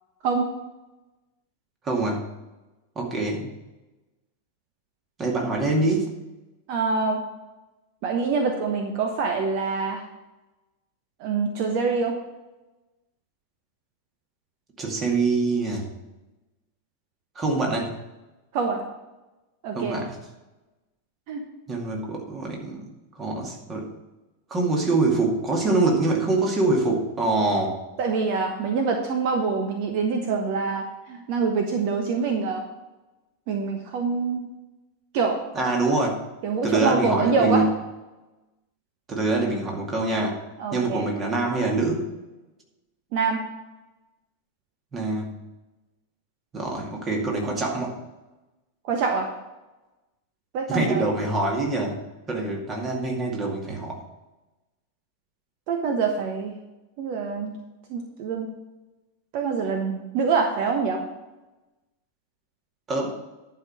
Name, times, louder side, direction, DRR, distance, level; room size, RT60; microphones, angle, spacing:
voice 1, 1.8-2.2 3.0-3.5 5.2-6.1 14.8-15.9 17.4-17.9 19.7-20.2 21.7-22.8 23.2-23.9 24.5-27.8 35.5-36.2 36.6-37.7 39.1-40.4 40.7-42.1 44.9-45.3 46.5-47.9 50.7-52.0 52.3-54.0 62.9-63.1, right 2 dB, 25° right, 0 dB, 2.3 m, -24 dB
voice 2, 6.7-7.2 8.0-10.0 11.2-12.2 18.5-18.8 19.6-20.0 21.3-21.4 28.0-32.6 33.5-34.5 35.1-35.4 36.4-37.7 40.6-41.1 43.1-43.5 48.8-49.3 50.5-51.1 55.7-56.5 57.0-57.5 57.9-58.5 59.3-61.0, right 4 dB, 45° right, 4 dB, 1.1 m, -25 dB
11.0 x 5.1 x 6.0 m, 1.1 s
figure-of-eight pair, 90°, 0 cm